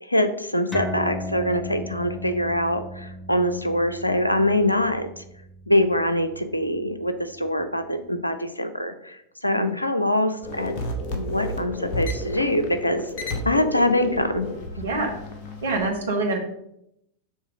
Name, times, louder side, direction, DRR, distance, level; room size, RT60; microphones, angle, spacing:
voice 1, 0.0-5.2 5.7-9.2 9.4-10.8 11.1-14.5, left 1 dB, 85° left, 9 dB, 0.6 m, -24 dB
sound 1, 0.7-7.6, left 1 dB, 5° left, 0.7 m, -37 dB
sound 2, 10.4-15.9, left 1 dB, 45° left, 1.1 m, -32 dB
voice 2, 14.8-15.1 15.6-16.4, right 3 dB, 70° right, 3 dB, 1.3 m, -25 dB
6.3 x 3.4 x 4.9 m, 0.78 s
figure-of-eight pair, 90°, 0 cm